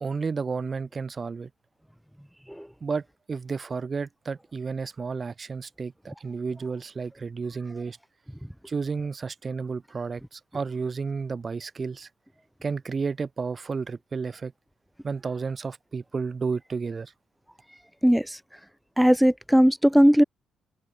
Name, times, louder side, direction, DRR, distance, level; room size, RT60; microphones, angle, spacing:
voice 1, 0.0-1.5 2.8-8.0 8.6-12.1 12.6-14.5 15.0-17.1, right 5 dB, 35° right, 0.7 m, -32 dB
voice 2, 18.0-18.4 19.0-20.2, equal, ahead, 0.4 m, -18 dB
cardioid pair, 90°, 0 cm